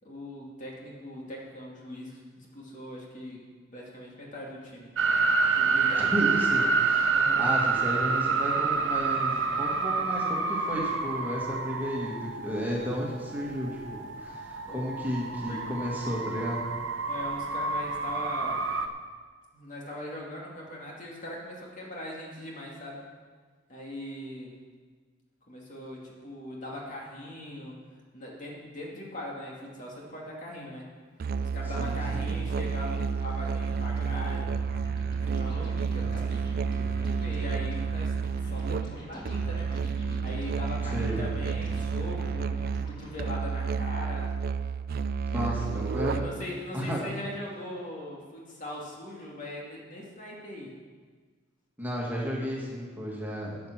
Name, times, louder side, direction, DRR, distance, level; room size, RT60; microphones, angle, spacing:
voice 1, 0.0-3.4 3.7-4.9 5.5-6.1 7.1-7.5 14.4-14.9 15.5-15.7 17.1-18.6 19.5-23.0 23.7-24.5 25.5-27.8 28.1-30.9 31.4-34.6 35.2-36.3 36.8-38.1 38.4-39.7 40.2-44.3 45.3-50.7, left 1 dB, 45° left, -3 dB, 2.4 m, -40 dB
sound 1, 5.0-18.9, right 4 dB, 80° right, 0.9 m, -28 dB
voice 2, 6.0-16.7 31.8-32.2 40.9-41.2 45.3-46.2 46.7-47.1 51.8-53.6, equal, 10° right, -4 dB, 2.2 m, -33 dB
Musical instrument, 31.2-46.5, right 6 dB, 50° right, 0.3 m, -30 dB
sound 2, 33.6-43.2, equal, 25° left, 1.9 m, -44 dB
13.0 x 7.9 x 6.0 m, 1.5 s
head